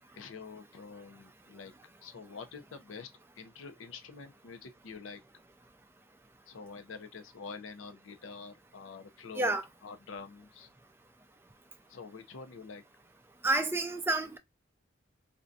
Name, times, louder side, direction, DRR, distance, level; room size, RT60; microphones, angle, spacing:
voice 1, 0.1-1.7 2.0-3.1 3.4-5.2 6.5-9.5 9.8-10.7 11.9-12.8, left 5 dB, 80° left, 0.5 m, -46 dB
voice 2, 13.4-14.4, right 2 dB, 10° right, 0.3 m, -29 dB
2.5 x 2.1 x 2.6 m
head